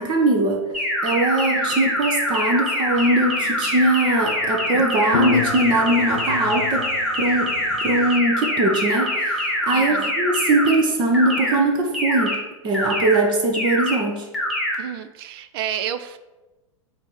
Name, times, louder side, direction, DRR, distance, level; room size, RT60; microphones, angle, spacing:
voice 1, 0.0-6.9 7.2-12.4 12.6-14.3, right 2 dB, 25° right, 3 dB, 0.9 m, -21 dB
sound 1, 0.7-10.8 11.1-11.6 11.9-12.4 12.7-13.2 13.5-14.0 14.3-14.8, left 1 dB, ahead, 1.6 m, -24 dB
voice 2, 1.6-1.9 9.7-10.1 14.8-16.2, right 9 dB, 45° right, 11 dB, 0.6 m, -31 dB
sound 2, 2.9-8.2, left 12 dB, 60° left, 0.4 m, -32 dB
8.5 x 2.9 x 6.1 m, 1.1 s
figure-of-eight pair, 95°, 17 cm